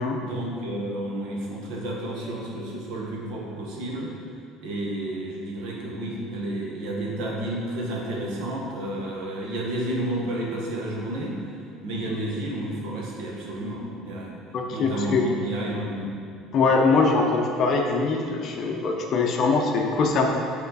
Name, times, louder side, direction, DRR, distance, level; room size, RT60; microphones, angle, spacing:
voice 1, 0.2-4.1 4.6-11.4 11.8-14.4 14.7-16.5, right 1 dB, 65° right, -2 dB, 1.3 m, -31 dB
voice 2, 14.5-15.2 16.5-20.3, left 4 dB, 35° left, 1 dB, 0.6 m, -22 dB
8.2 x 4.3 x 4.0 m, 2.4 s
cardioid pair, 175°, 0 cm